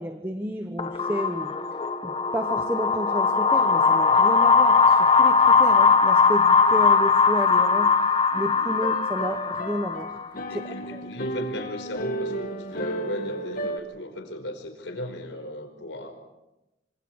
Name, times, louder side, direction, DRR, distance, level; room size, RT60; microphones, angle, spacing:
voice 1, 0.0-10.1 10.5-10.6 10.9-11.0, equal, 15° right, 7 dB, 1.2 m, -31 dB
sound 1, 0.8-10.3, left 5 dB, 30° left, 1.1 m, -20 dB
sound 2, 8.3-13.8, right 1 dB, 50° left, 1.9 m, -34 dB
voice 2, 10.5-16.1, left 1 dB, 85° left, 6 dB, 5.1 m, -36 dB
26.5 x 26.5 x 4.8 m, 0.97 s
head